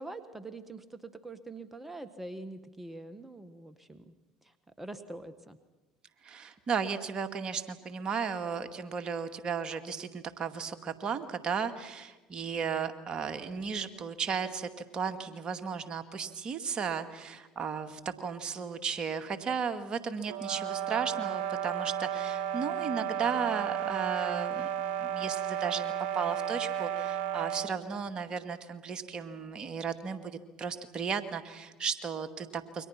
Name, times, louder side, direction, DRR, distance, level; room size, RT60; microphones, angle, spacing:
voice 1, 0.0-4.1 4.4-5.6, right 2 dB, 10° right, 10 dB, 1.7 m, -44 dB
voice 2, 6.2-24.7 25.0-32.9, right 6 dB, 40° right, 8 dB, 2.2 m, -35 dB
sound 1, 20.3-27.8, right 9 dB, 65° right, 0.8 m, -33 dB
29.5 x 24.0 x 6.0 m, 1.1 s
hypercardioid pair, 70°, 2 cm